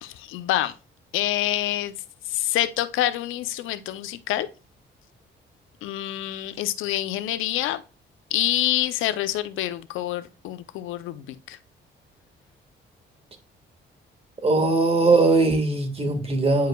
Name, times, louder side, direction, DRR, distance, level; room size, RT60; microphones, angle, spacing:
voice 1, 0.0-0.7 1.1-1.9 2.3-4.5 5.8-7.8 8.3-11.6, left 13 dB, 90° left, 0.6 m, -27 dB
voice 2, 14.4-16.7, right 3 dB, 30° right, 1.6 m, -20 dB
9.2 x 4.7 x 2.3 m
cardioid pair, 90°, 20 cm